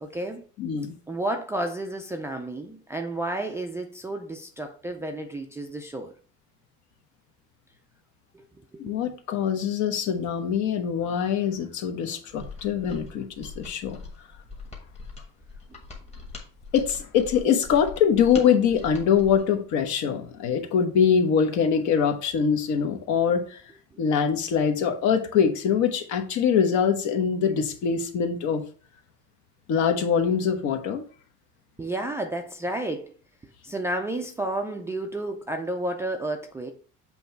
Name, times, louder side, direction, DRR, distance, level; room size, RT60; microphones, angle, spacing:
voice 1, 0.0-0.5 1.1-6.2 8.3-8.4 8.7-8.9 31.8-33.1 33.6-36.7, right 1 dB, 10° right, 0.3 m, -31 dB
voice 2, 0.6-1.0 8.8-14.0 16.7-23.6 24.0-28.6 29.7-31.0, left 7 dB, 60° left, 1.1 m, -23 dB
Mechanisms, 12.3-19.5, left 4 dB, 20° left, 1.3 m, -42 dB
7.8 x 3.0 x 4.4 m
cardioid pair, 170°, 32 cm